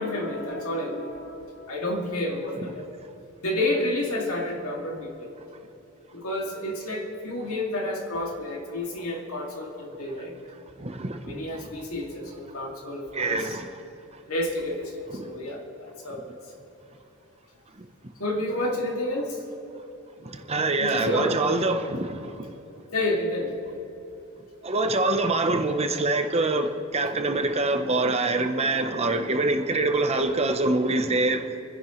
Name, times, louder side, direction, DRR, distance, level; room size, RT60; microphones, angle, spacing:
voice 1, 0.0-2.8 3.4-5.3 6.1-10.3 11.2-13.6 14.3-16.4 18.2-19.4 20.8-21.6 22.9-23.8, left 1 dB, 70° left, 2.4 m, -30 dB
voice 2, 10.8-11.4 13.1-13.7 15.1-15.3 20.2-22.5 24.6-31.5, right 2 dB, 30° right, 0.8 m, -25 dB
27.5 x 10.5 x 3.1 m
head